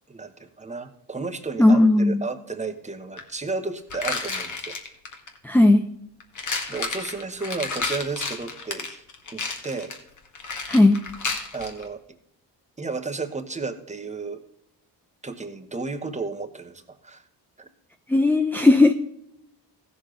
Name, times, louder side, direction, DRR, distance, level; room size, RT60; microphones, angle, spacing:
voice 1, 0.1-4.8 6.7-9.0 9.3-9.9 11.5-12.0 12.8-14.4 15.2-17.3 17.6-17.7, right 4 dB, 15° right, 7 dB, 1.2 m, -33 dB
voice 2, 1.6-2.2 5.4-5.8 10.7-11.0 18.1-18.9, left 2 dB, 5° left, 7 dB, 0.5 m, -16 dB
sound 1, 3.2-3.3 3.9-5.4 6.2-11.9, left 4 dB, 45° left, 1.8 m, -31 dB
15.5 x 6.8 x 3.9 m, 0.76 s
cardioid pair, 80°, 42 cm